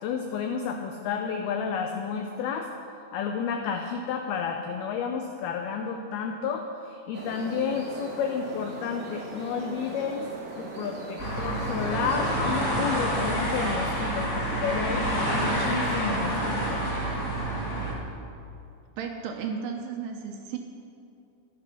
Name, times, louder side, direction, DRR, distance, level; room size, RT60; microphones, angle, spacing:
voice 1, 0.0-2.7 3.1-10.3 10.6-16.8, left 6 dB, 85° left, 4 dB, 2.1 m, -31 dB
sound 1, 7.1-12.3, right 2 dB, 50° right, 1.2 m, -40 dB
sound 2, 11.2-17.9, right 1 dB, 65° left, 0.7 m, -28 dB
voice 2, 19.0-20.6, right 6 dB, 75° right, 3 dB, 2.5 m, -34 dB
13.5 x 11.5 x 5.6 m, 2.6 s
omnidirectional pair, 5.3 m